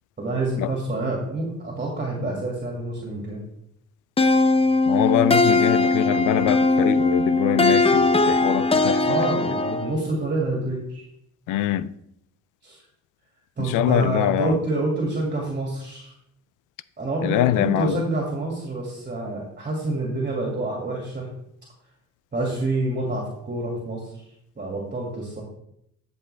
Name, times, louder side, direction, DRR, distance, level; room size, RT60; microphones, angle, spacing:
voice 1, 0.2-3.4 9.0-11.1 12.6-12.8 13.6-16.1 17.0-21.3 22.3-24.0 24.6-25.4, right 2 dB, 30° right, 2.3 m, -27 dB
sound 1, 4.2-10.0, left 3 dB, 20° left, 0.6 m, -20 dB
voice 2, 4.9-9.3 11.5-11.9 13.6-14.6 17.2-18.0, left 12 dB, 90° left, 0.5 m, -24 dB
13.0 x 5.3 x 3.4 m
cardioid pair, 90°, 30 cm